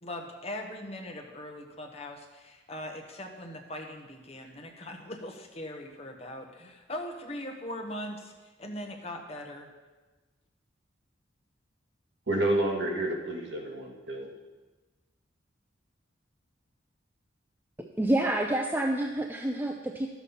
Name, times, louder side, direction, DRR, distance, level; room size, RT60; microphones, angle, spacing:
voice 1, 0.0-8.3 8.6-9.7, left 1 dB, 30° left, 2 dB, 1.1 m, -40 dB
voice 2, 12.3-14.3, right 1 dB, 65° right, 1 dB, 1.8 m, -29 dB
voice 3, 17.8-20.1, right 1 dB, 10° right, 3 dB, 0.4 m, -28 dB
12.0 x 7.1 x 5.7 m, 1.2 s
head